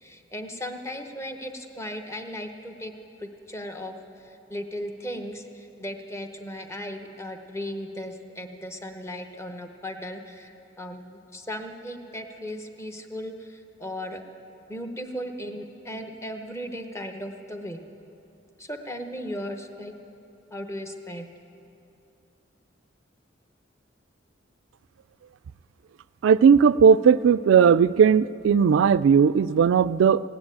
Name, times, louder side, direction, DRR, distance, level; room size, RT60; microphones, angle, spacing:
voice 1, 0.0-2.9 3.2-14.2 14.7-17.8 18.6-19.9 20.5-21.3, equal, 15° left, 6 dB, 0.9 m, -36 dB
voice 2, 26.2-30.2, right 6 dB, 75° right, 17 dB, 0.3 m, -17 dB
17.0 x 9.7 x 8.8 m, 2.8 s
head